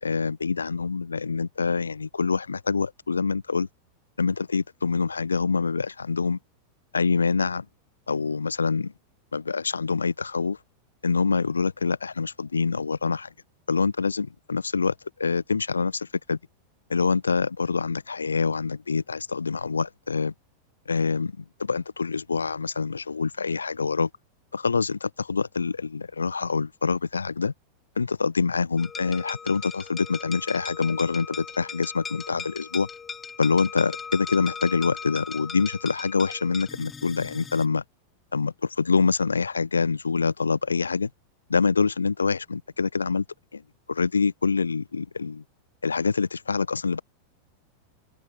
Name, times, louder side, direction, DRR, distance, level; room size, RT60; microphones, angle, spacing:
voice 1, 0.0-3.7 4.2-6.4 6.9-7.7 8.1-8.9 9.3-10.6 11.0-13.3 13.7-16.4 16.9-20.3 20.9-24.1 24.5-27.5 28.0-32.9 33.4-37.8 38.3-41.1 41.5-43.2 43.5-43.6 43.9-45.4 45.8-47.0, left 5 dB, 75° left, 1.3 m, -25 dB
sound 1, 28.8-37.7, left 6 dB, 20° left, 0.8 m, -38 dB
figure-of-eight pair, 90°, 0 cm